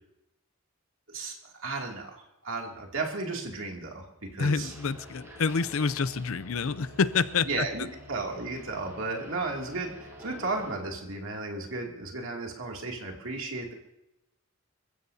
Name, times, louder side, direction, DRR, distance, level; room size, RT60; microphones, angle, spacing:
voice 1, 1.1-4.7 7.5-13.7, right 3 dB, 65° right, 1 dB, 2.6 m, -34 dB
voice 2, 4.4-7.7, left 5 dB, 70° left, 15 dB, 0.6 m, -27 dB
sound 1, 4.6-10.8, equal, 10° right, 3.5 m, -47 dB
27.5 x 15.0 x 2.8 m, 0.88 s
head